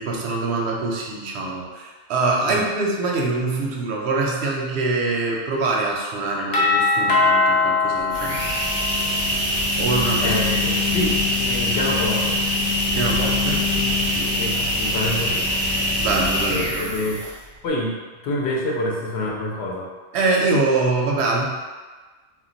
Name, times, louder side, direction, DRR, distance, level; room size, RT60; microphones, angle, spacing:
voice 1, 0.0-8.4 9.8-10.7 12.9-14.4 16.0-17.1 20.1-21.4, right 3 dB, 65° right, -1 dB, 0.7 m, -24 dB
Doorbell, 6.5-9.4, left 3 dB, 90° left, 1.1 m, -21 dB
sound 1, 8.0-17.5, left 1 dB, 15° right, 0.5 m, -23 dB
voice 2, 10.2-12.4 14.4-15.5 16.5-17.2 17.6-17.9 18.2-19.9, left 1 dB, 60° left, -2 dB, 0.7 m, -26 dB
2.3 x 2.2 x 3.8 m, 1.4 s
omnidirectional pair, 1.4 m